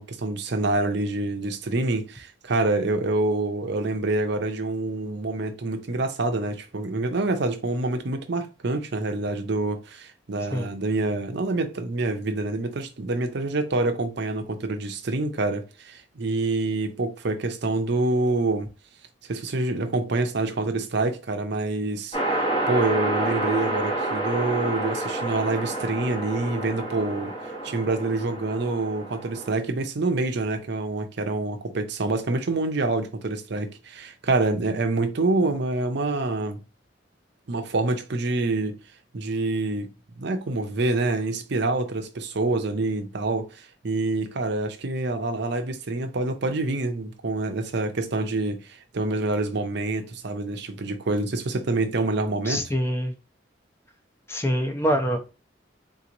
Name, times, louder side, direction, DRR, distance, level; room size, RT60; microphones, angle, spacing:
voice 1, 0.0-18.7 19.3-22.2 22.7-27.3 27.6-36.6 37.5-38.8 39.1-39.9 40.2-52.6, right 2 dB, 65° right, 0.7 m, -26 dB
sound 1, 22.1-29.5, right 2 dB, 30° left, 1.1 m, -29 dB
voice 2, 52.5-53.1 54.3-55.3, equal, 15° left, 0.6 m, -25 dB
3.9 x 2.9 x 2.6 m
head